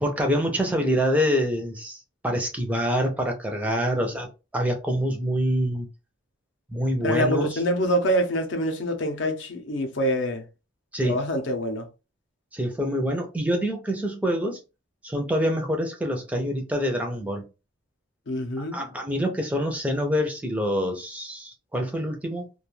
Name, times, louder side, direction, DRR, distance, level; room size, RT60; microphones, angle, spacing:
voice 1, 0.0-4.3 4.5-5.9 6.7-7.6 10.9-11.2 12.5-14.6 15.0-17.4 18.6-22.5, equal, 5° right, 0.4 m, -26 dB
voice 2, 7.0-10.4 11.0-11.9 18.3-18.8, equal, 65° left, 0.5 m, -25 dB
2.3 x 2.2 x 3.0 m
head